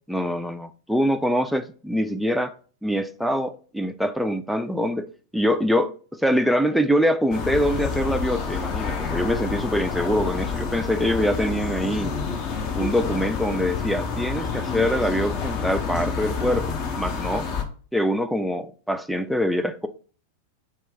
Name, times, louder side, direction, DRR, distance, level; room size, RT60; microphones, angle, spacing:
voice 1, 0.1-2.5 2.8-5.1 5.3-12.1 12.8-17.5 17.9-19.9, equal, ahead, 0.3 m, -24 dB
sound 1, 7.3-17.6, left 5 dB, 40° left, 0.7 m, -28 dB
4.3 x 2.4 x 3.5 m
figure-of-eight pair, 90°, 0 cm